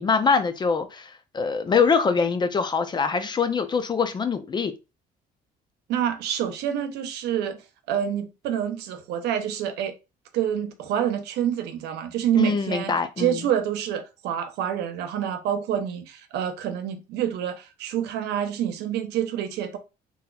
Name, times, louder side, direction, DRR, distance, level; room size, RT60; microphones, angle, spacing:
voice 1, 0.0-4.7 12.4-13.4, left 5 dB, 25° left, 0.4 m, -23 dB
voice 2, 5.9-9.9 10.3-19.8, right 9 dB, 80° right, 0.6 m, -27 dB
3.8 x 2.8 x 2.3 m
cardioid pair, 110°, 17 cm